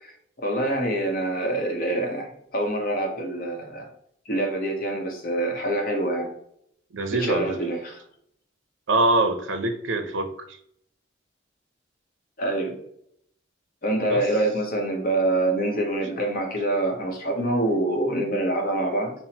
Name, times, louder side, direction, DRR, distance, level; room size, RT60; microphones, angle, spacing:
voice 1, 0.0-3.9 4.3-6.3 7.1-8.0 12.4-12.8 13.8-19.1, right 1 dB, 45° left, 3 dB, 0.8 m, -26 dB
voice 2, 6.9-7.6 8.9-10.6 14.1-14.2, right 2 dB, 70° right, 7 dB, 0.5 m, -24 dB
5.8 x 2.0 x 2.8 m, 0.69 s
head